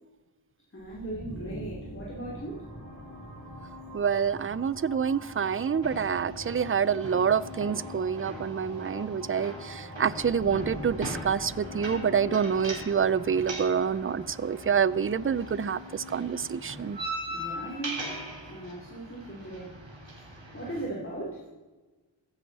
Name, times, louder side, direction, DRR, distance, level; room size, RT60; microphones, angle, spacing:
voice 1, 0.7-2.7 17.3-18.0 18.5-19.8 20.5-21.4, right 1 dB, 25° left, -5 dB, 3.0 m, -38 dB
sound 1, 0.8-18.5, left 1 dB, 50° right, 3.2 m, -43 dB
voice 2, 3.9-17.0, right 7 dB, 30° right, 19 dB, 0.4 m, -27 dB
sound 2, 5.8-20.8, right 1 dB, 70° right, 3.5 m, -41 dB
15.0 x 10.5 x 4.0 m, 1.2 s
wide cardioid pair, 80°, 47 cm